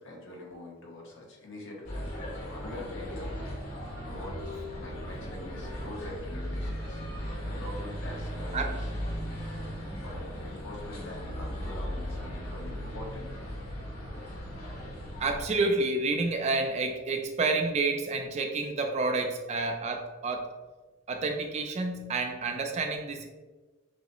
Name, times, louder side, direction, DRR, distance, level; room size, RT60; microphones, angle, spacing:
voice 1, 0.0-3.8 4.0-7.0 7.3-8.9 9.9-13.3, left 2 dB, 60° left, -1 dB, 1.0 m, -44 dB
sound 1, 1.8-15.4, equal, 90° left, 1.5 m, -37 dB
voice 2, 4.4-5.0 8.5-8.7 15.2-20.5 21.1-23.3, right 3 dB, 30° right, 4 dB, 0.3 m, -29 dB
6.0 x 2.1 x 3.0 m, 1.2 s
head